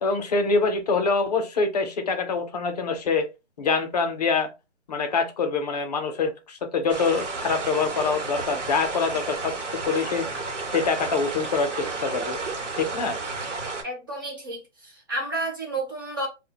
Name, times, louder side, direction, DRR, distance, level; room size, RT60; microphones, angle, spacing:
voice 1, 0.0-3.3 3.6-4.5 4.9-9.6 9.9-10.3 10.7-12.4 12.8-13.2, left 4 dB, 35° left, 0.5 m, -25 dB
sound 1, 6.9-13.8, right 3 dB, 80° right, 0.9 m, -32 dB
voice 2, 13.8-16.3, right 1 dB, 20° right, 0.4 m, -31 dB
2.4 x 2.1 x 2.7 m
hypercardioid pair, 150°, 36 cm